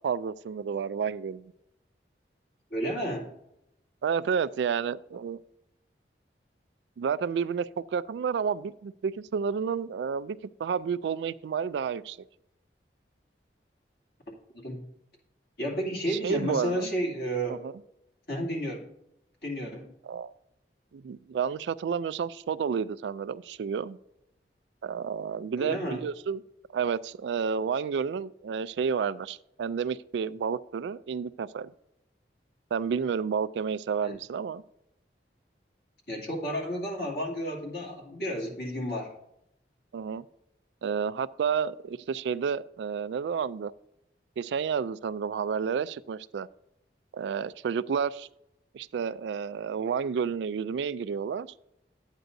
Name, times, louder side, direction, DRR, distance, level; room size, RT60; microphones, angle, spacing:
voice 1, 0.0-1.5 4.0-5.4 7.0-12.2 16.1-16.9 17.5-17.7 20.0-20.3 20.9-24.0 24.8-26.4 26.7-31.7 32.7-34.6 39.9-40.3 40.8-43.7 44.4-46.5 47.1-48.3 48.7-51.5, right 6 dB, 80° right, 17 dB, 0.3 m, -30 dB
voice 2, 2.7-3.3 14.6-14.9 15.6-17.6 18.3-18.9 19.4-19.9 25.6-26.0 34.0-34.2 36.1-39.2, equal, 65° left, -2 dB, 2.4 m, -32 dB
12.0 x 9.0 x 2.6 m, 0.83 s
head